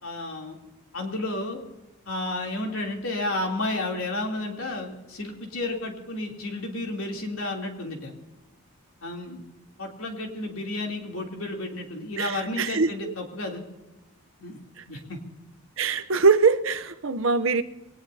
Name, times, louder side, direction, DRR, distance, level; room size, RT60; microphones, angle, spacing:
voice 1, 0.0-0.6 0.9-1.6 2.1-8.1 9.0-9.4 9.8-13.7 14.4-14.6 14.9-15.2, left 2 dB, 70° left, 0 dB, 3.1 m, -32 dB
voice 2, 12.2-13.1 14.8-14.9 15.8-17.6, right 4 dB, 65° right, 10 dB, 0.8 m, -23 dB
23.0 x 19.0 x 2.8 m, 1.0 s
head